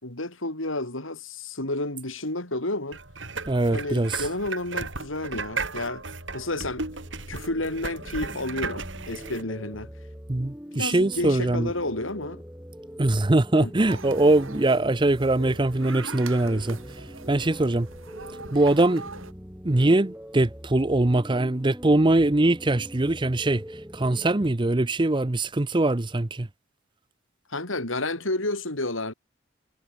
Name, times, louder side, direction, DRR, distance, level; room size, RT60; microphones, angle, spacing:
voice 1, 0.0-3.0 3.7-6.0 6.3-6.9 7.3-9.9 10.7-12.4 13.5-13.7 27.5-29.1, left 2 dB, 80° left, 5.8 m, -31 dB
sound 1, 2.9-9.4, right 4 dB, 65° right, 6.5 m, -35 dB
voice 2, 3.5-4.2 10.3-11.7 13.0-16.8 17.3-17.9 18.5-19.0 19.6-23.6 23.9-26.5, right 2 dB, 25° right, 0.7 m, -22 dB
sound 2, 6.2-24.5, equal, 10° right, 5.8 m, -43 dB
sound 3, 13.9-19.3, right 3 dB, 85° right, 8.0 m, -42 dB
head